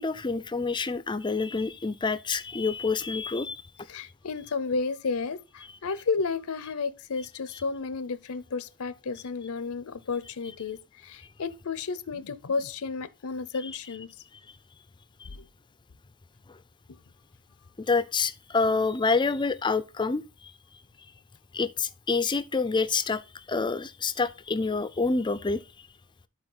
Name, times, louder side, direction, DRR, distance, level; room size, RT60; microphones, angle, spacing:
voice 1, 0.0-3.6 13.6-13.7 15.2-15.3 16.5-16.6 17.9-20.2 21.5-25.6, left 4 dB, 20° left, 0.4 m, -27 dB
voice 2, 3.9-14.2 15.3-15.5, left 4 dB, 70° left, 0.6 m, -32 dB
12.5 x 4.4 x 3.8 m
head